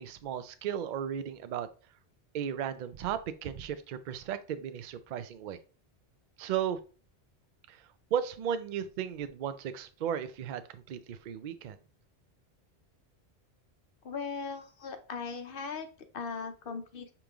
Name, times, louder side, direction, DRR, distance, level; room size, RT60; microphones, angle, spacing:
voice 1, 0.0-1.7 2.3-5.6 6.4-6.8 7.7-7.8 8.1-11.8, right 9 dB, 60° right, 11 dB, 0.5 m, -35 dB
voice 2, 14.0-15.9 16.1-17.1, left 5 dB, 60° left, 7 dB, 0.8 m, -38 dB
5.1 x 3.0 x 3.4 m, 0.36 s
omnidirectional pair, 1.2 m